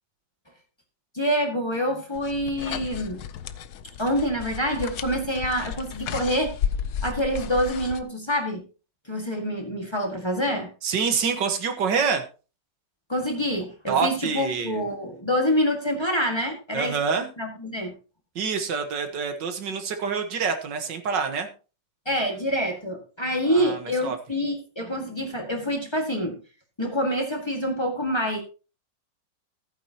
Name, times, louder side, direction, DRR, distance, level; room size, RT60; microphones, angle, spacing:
voice 1, 1.1-3.2 4.0-6.5 7.0-8.6 9.1-10.7 13.1-17.0 17.4-17.9 22.1-26.4 26.8-28.4, equal, 15° left, 2 dB, 1.8 m, -26 dB
sound 1, 2.1-8.0, left 8 dB, 65° left, 1.1 m, -33 dB
voice 2, 10.8-12.2 13.9-14.8 16.7-17.3 18.4-21.5 23.5-24.2, right 5 dB, 75° right, 6 dB, 2.0 m, -26 dB
15.0 x 9.1 x 2.9 m, 0.34 s
omnidirectional pair, 1.9 m